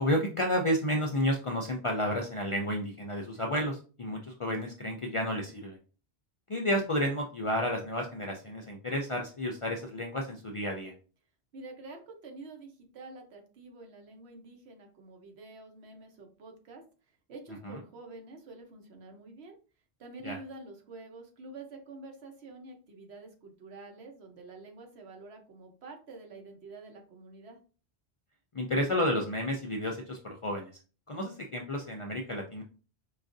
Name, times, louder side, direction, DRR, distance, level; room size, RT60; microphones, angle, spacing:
voice 1, 0.0-5.8 6.5-10.9 17.6-17.8 20.2-20.4 28.5-30.7 31.1-32.6, left 1 dB, 55° left, 2 dB, 0.3 m, -31 dB
voice 2, 11.5-16.8 17.3-19.6 20.0-27.6, right 3 dB, 90° right, 3 dB, 1.1 m, -48 dB
4.6 x 2.4 x 2.5 m, 0.37 s
omnidirectional pair, 1.1 m